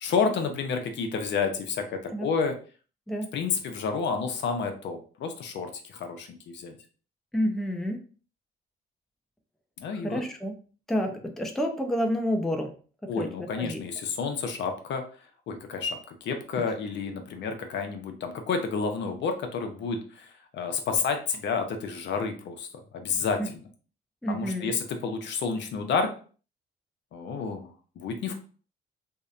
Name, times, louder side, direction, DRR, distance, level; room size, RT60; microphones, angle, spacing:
voice 1, 0.0-2.5 3.3-6.8 9.8-10.2 13.1-15.0 15.5-22.7 22.9-23.4 24.3-26.1 27.1-27.7 28.0-28.4, left 5 dB, 65° left, 5 dB, 0.5 m, -30 dB
voice 2, 7.3-8.0 9.9-10.5 10.9-12.7 13.0-13.8 23.4-23.5 24.2-24.7, equal, ahead, 4 dB, 0.4 m, -29 dB
2.7 x 2.1 x 2.3 m, 0.40 s
cardioid pair, 90°, 20 cm